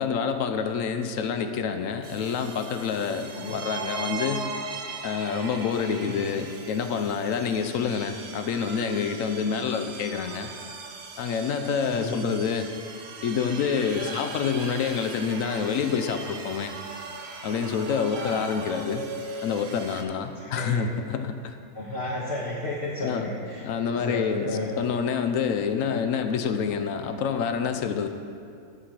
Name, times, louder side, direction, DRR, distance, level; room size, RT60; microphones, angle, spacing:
voice 1, 0.0-4.4 5.0-10.5 11.2-12.7 13.2-16.7 17.4-19.1 19.4-21.5 23.0-23.3 23.6-28.1, left 6 dB, 70° left, 7 dB, 0.9 m, -27 dB
sound 1, 2.0-20.0, right 4 dB, 50° right, 0.9 m, -39 dB
voice 2, 3.3-3.7 5.8-6.2 11.8-12.2 14.0-14.2 18.1-18.4 20.4-20.7 21.7-24.7, left 2 dB, 45° left, -5 dB, 1.2 m, -33 dB
12.5 x 4.3 x 6.3 m, 2.4 s
omnidirectional pair, 1.6 m